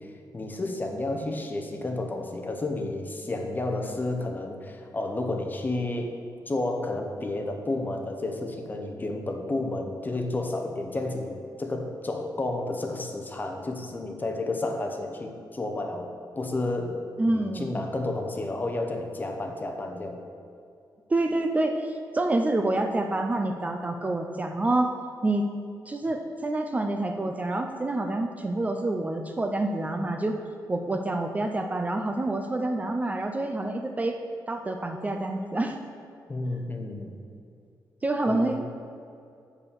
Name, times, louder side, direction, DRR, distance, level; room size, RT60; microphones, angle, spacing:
voice 1, 0.0-6.2 6.5-16.1 16.4-20.2 36.3-37.2 38.3-38.6, left 2 dB, 25° left, 4 dB, 0.8 m, -31 dB
voice 2, 17.2-17.8 21.1-24.9 25.2-25.4 25.9-30.4 30.7-34.2 34.5-35.8 38.0-38.6, right 2 dB, 20° right, 4 dB, 0.5 m, -27 dB
6.2 x 5.6 x 7.1 m, 2.4 s
wide cardioid pair, 135°, 7 cm